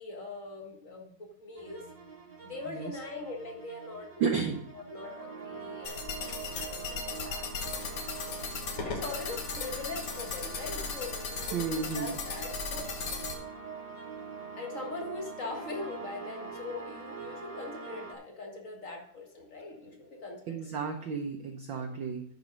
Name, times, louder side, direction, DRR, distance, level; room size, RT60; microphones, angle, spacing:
voice 1, 0.0-1.8 2.4-4.2 4.7-8.4 8.8-12.9 14.6-20.7 21.8-21.9, left 3 dB, 35° left, 2 dB, 1.5 m, -42 dB
sound 1, 1.6-18.1, right 5 dB, 20° right, 0.9 m, -44 dB
voice 2, 4.2-4.6 11.5-12.1 12.9-13.0 20.5-22.2, right 5 dB, 75° right, 4 dB, 1.1 m, -32 dB
sound 2, 5.8-13.3, left 5 dB, 55° left, 1.9 m, -37 dB
11.0 x 5.3 x 5.1 m, 0.67 s
omnidirectional pair, 3.3 m